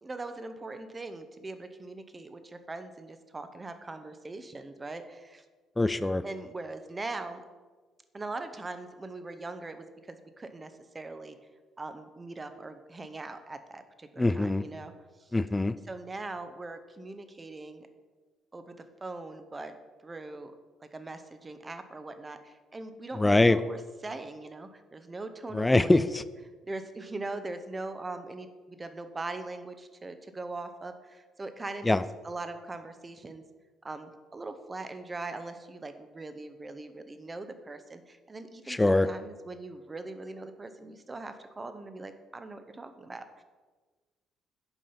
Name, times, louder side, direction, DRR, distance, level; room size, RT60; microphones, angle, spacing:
voice 1, 0.0-5.4 6.2-7.4 8.1-11.4 11.8-14.9 15.2-15.3 15.9-17.9 18.5-19.7 20.0-20.5 20.8-26.1 26.6-32.0 32.2-33.4 33.8-43.4, right 2 dB, 25° right, 9 dB, 0.9 m, -41 dB
voice 2, 5.8-6.2 14.2-14.6 15.3-15.8 23.1-23.6 25.5-26.2 31.8-32.0 38.7-39.1, left 2 dB, 15° left, 15 dB, 0.4 m, -23 dB
8.2 x 5.5 x 5.5 m, 1.4 s
figure-of-eight pair, 50°, 0 cm